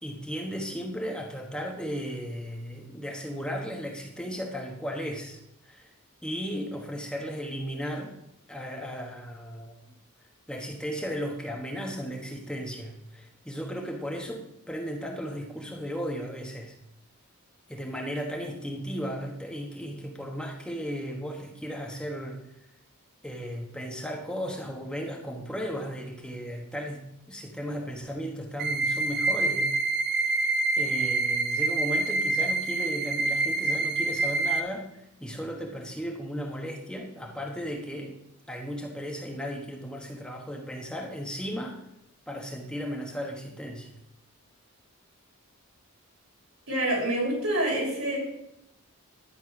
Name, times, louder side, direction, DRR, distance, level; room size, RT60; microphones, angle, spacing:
voice 1, 0.0-5.9 6.2-8.1 8.5-9.8 10.5-16.7 17.7-22.4 23.2-29.8 30.2-30.5 30.8-38.2 38.5-41.8 42.3-43.9, equal, 5° left, 1 dB, 1.2 m, -35 dB
sound 1, 28.6-34.6, right 3 dB, 45° right, 0.8 m, -26 dB
voice 2, 46.7-48.2, right 1 dB, 70° right, -3 dB, 6.2 m, -27 dB
11.5 x 10.0 x 6.0 m, 0.82 s
head